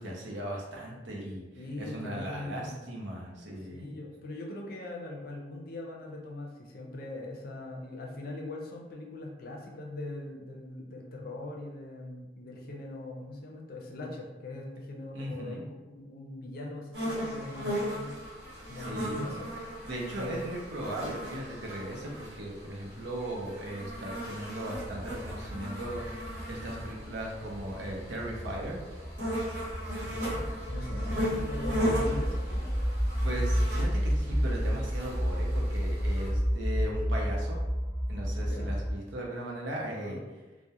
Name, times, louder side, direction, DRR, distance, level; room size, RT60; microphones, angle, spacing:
voice 1, 0.0-1.4 1.8-4.0 15.1-15.6 18.8-19.3 19.8-26.0 26.4-28.8 33.2-37.6 38.1-40.2, right 1 dB, 85° right, -2 dB, 0.6 m, -37 dB
voice 2, 1.6-3.0 3.7-15.6 16.0-18.2 18.7-19.5 20.2-20.6 30.0-32.7 38.4-38.7 39.8-40.3, left 2 dB, 55° left, 0 dB, 0.4 m, -41 dB
sound 1, 16.9-36.3, equal, 65° right, 1.0 m, -37 dB
sound 2, 24.7-39.0, equal, 10° right, 0.6 m, -32 dB
2.3 x 2.1 x 2.8 m, 1.2 s
head